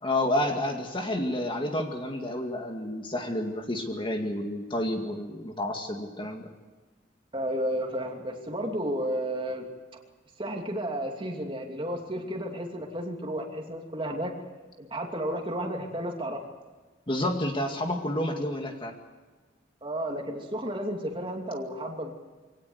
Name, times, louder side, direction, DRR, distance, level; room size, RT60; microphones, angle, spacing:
voice 1, 0.0-6.5 17.1-18.9, left 1 dB, 25° left, 3 dB, 2.1 m, -30 dB
voice 2, 7.3-9.7 10.4-14.3 14.9-16.4 19.8-22.1, equal, 25° right, 1 dB, 2.8 m, -32 dB
24.5 x 18.0 x 8.1 m, 1.3 s
head